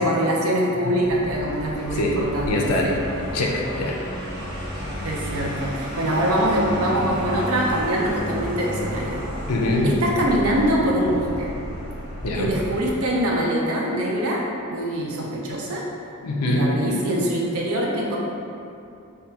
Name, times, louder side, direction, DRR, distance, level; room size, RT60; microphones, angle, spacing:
voice 1, 0.0-3.0 5.0-9.2 9.8-11.5 12.3-14.4 14.7-15.8 16.5-18.2, right 1 dB, 75° right, -2 dB, 0.5 m, -23 dB
Vehicle, 1.0-13.2, equal, 45° right, 1.1 m, -32 dB
voice 2, 2.5-2.9 3.3-4.0 4.8-4.9 9.5-9.9 12.2-12.6 16.2-16.7, left 2 dB, 85° left, 0 dB, 0.4 m, -23 dB
3.5 x 2.2 x 2.8 m, 2.6 s
head